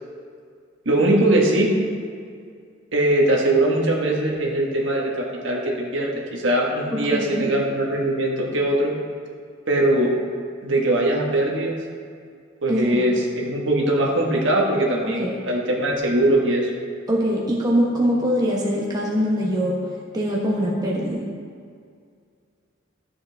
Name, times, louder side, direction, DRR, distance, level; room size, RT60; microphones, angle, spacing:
voice 1, 0.8-1.7 2.9-8.9 9.7-10.1 10.6-11.8 12.6-16.7, right 1 dB, 70° right, -1 dB, 1.5 m, -21 dB
voice 2, 6.9-7.5 12.7-13.0 15.2-15.3 17.1-19.8 20.1-21.3, equal, 20° right, -4 dB, 1.2 m, -23 dB
13.0 x 7.2 x 3.5 m, 2.2 s
head